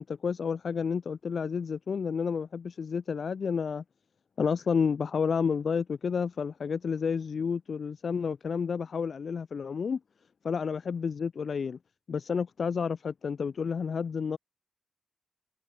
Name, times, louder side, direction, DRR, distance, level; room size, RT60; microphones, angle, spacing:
voice 1, 0.0-3.8 4.4-10.0 10.4-11.8 12.1-14.4, left 6 dB, 60° left, 0.5 m, -30 dB
cardioid pair, 75°, 0 cm